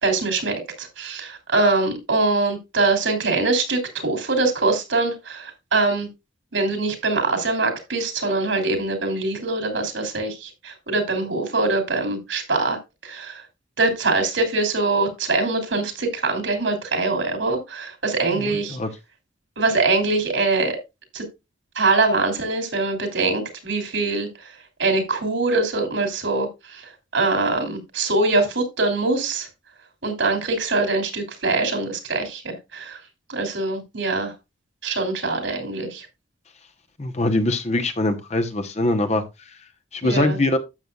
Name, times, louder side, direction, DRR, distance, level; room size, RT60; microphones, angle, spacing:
voice 1, 0.0-6.1 6.5-13.4 13.8-18.8 19.6-20.8 21.1-21.2 21.7-24.5 24.8-29.5 30.0-33.0 33.3-34.3 34.8-36.1 40.0-40.4, right 3 dB, 70° right, 3.0 m, -23 dB
voice 2, 18.3-18.9 37.0-39.2 39.9-40.6, left 1 dB, 35° left, 0.9 m, -22 dB
12.0 x 7.9 x 2.4 m
head